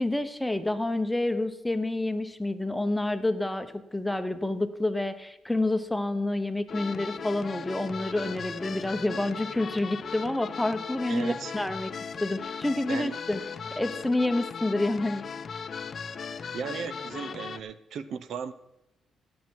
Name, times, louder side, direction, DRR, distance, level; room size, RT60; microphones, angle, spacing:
voice 1, 0.0-11.9 12.2-13.4 13.8-15.3, left 2 dB, 5° left, 10 dB, 0.9 m, -28 dB
sound 1, 6.7-17.6, left 6 dB, 45° left, 0.6 m, -37 dB
voice 2, 11.1-11.5 12.9-13.2 16.5-18.5, right 7 dB, 70° right, 14 dB, 0.6 m, -36 dB
16.5 x 7.5 x 4.6 m, 0.88 s
cardioid pair, 90°, 0 cm